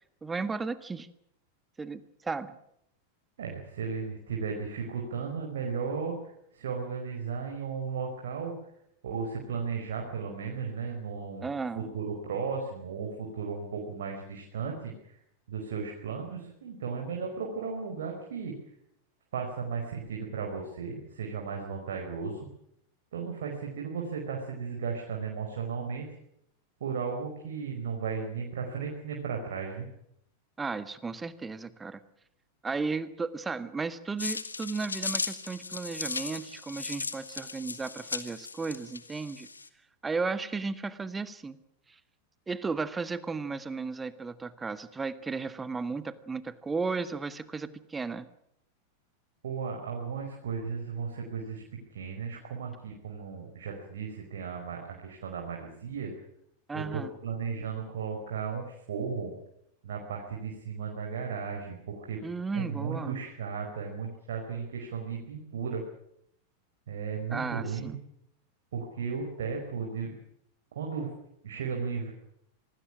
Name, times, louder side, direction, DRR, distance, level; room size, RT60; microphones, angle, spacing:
voice 1, 0.2-1.1 1.8-2.6 11.4-11.9 30.6-32.0 32.6-39.5 40.0-41.6 42.5-48.3 56.7-57.1 62.2-63.1 67.3-68.0, right 4 dB, 15° right, 14 dB, 1.6 m, -34 dB
voice 2, 3.4-8.6 9.0-11.5 11.7-15.2 15.5-18.5 19.3-22.4 23.1-26.1 26.8-29.9 49.4-51.6 51.9-56.1 56.7-59.3 59.8-62.2 62.5-65.8 66.9-68.0 68.7-70.1 70.7-71.1 71.4-72.1, right 5 dB, 60° right, 1 dB, 5.0 m, -35 dB
sound 1, 34.2-39.7, left 4 dB, 75° left, 1.6 m, -37 dB
26.5 x 20.5 x 6.2 m, 0.75 s
figure-of-eight pair, 90°, 0 cm